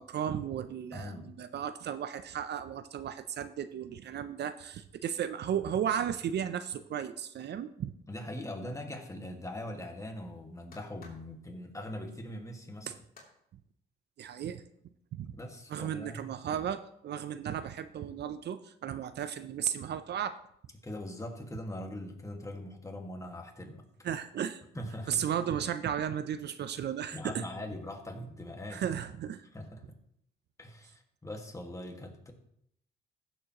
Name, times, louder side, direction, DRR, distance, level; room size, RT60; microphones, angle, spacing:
voice 1, 0.0-7.9 12.9-13.0 14.2-14.6 15.1-15.3 15.7-20.4 24.0-24.6 25.1-27.4 28.7-29.4, right 9 dB, 60° right, 12 dB, 0.5 m, -35 dB
voice 2, 0.9-1.3 8.1-12.9 15.3-16.4 20.8-23.9 24.8-25.2 27.1-28.8 29.5-29.8 30.6-32.3, left 1 dB, 15° left, 3 dB, 1.8 m, -41 dB
sound 1, 9.4-13.3, left 3 dB, 45° left, 3.0 m, -62 dB
15.5 x 7.2 x 3.0 m, 0.71 s
cardioid pair, 90°, 20 cm